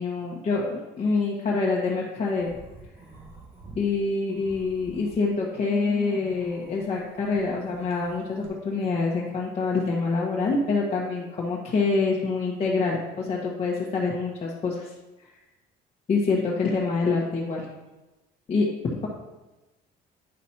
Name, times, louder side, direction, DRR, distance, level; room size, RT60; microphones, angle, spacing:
voice 1, 0.0-2.5 3.7-14.9 16.1-17.7 18.5-18.7, left 4 dB, 35° left, -5 dB, 1.4 m, -26 dB
sound 1, 2.2-3.8 4.2-8.5, right 2 dB, 35° right, 2.3 m, -45 dB
9.9 x 6.2 x 2.9 m, 1.0 s
cardioid pair, 110°, 17 cm